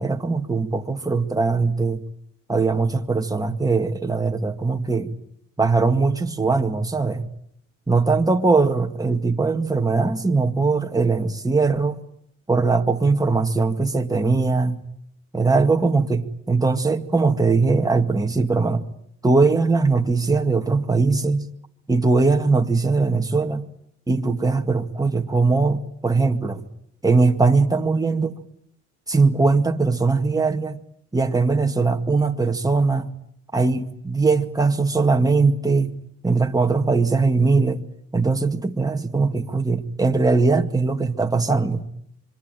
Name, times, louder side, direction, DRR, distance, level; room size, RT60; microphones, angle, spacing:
voice 1, 0.0-2.0 2.5-5.2 5.6-7.2 7.9-12.0 12.5-14.8 15.3-18.8 19.2-21.5 21.9-23.7 24.1-26.6 27.0-28.4 29.1-30.8 31.1-33.1 33.5-35.9 36.2-37.8 38.1-41.9, right 3 dB, 10° right, 2.0 m, -20 dB
26.0 x 23.5 x 9.3 m
cardioid pair, 90°, 30 cm